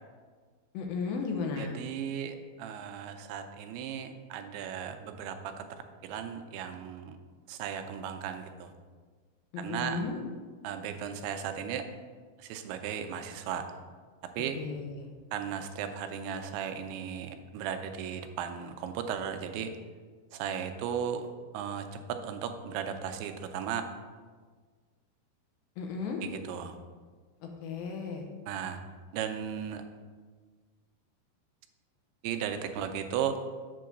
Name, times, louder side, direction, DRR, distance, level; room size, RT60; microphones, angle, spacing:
voice 1, 0.7-1.8 9.5-10.2 14.6-15.1 25.8-26.2 27.4-28.3, left 4 dB, 75° left, 2 dB, 2.5 m, -35 dB
voice 2, 1.6-5.6 6.0-7.2 7.5-8.7 9.6-10.0 10.6-11.8 12.4-13.7 14.4-14.6 15.3-19.7 20.3-21.3 21.5-23.8 26.5-26.8 28.5-28.8 29.1-29.8 32.2-33.4, right 8 dB, 85° right, 7 dB, 2.5 m, -36 dB
7.9 x 3.8 x 6.4 m, 1.5 s
omnidirectional pair, 4.5 m